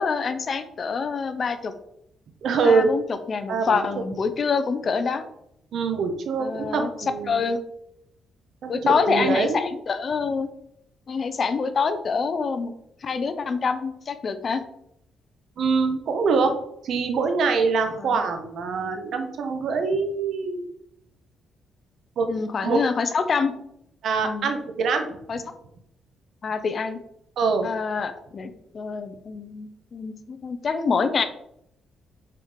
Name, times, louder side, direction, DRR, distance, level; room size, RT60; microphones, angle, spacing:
voice 1, 0.0-1.7 2.6-5.3 6.4-7.6 8.7-10.5 11.1-12.7 13.0-14.6 18.0-18.2 22.3-23.5 24.2-24.5 25.3-25.4 26.4-27.0 27.6-31.2, left 5 dB, 40° left, 10 dB, 0.8 m, -26 dB
voice 2, 2.4-2.9 3.5-3.9 5.7-7.4 8.6-9.6 15.6-16.5 16.8-20.6 22.2-22.3 22.6-22.8 24.0-25.2 27.4-27.7, right 4 dB, 70° right, 6 dB, 1.2 m, -24 dB
5.9 x 4.7 x 5.1 m, 0.76 s
cardioid pair, 120°, 0 cm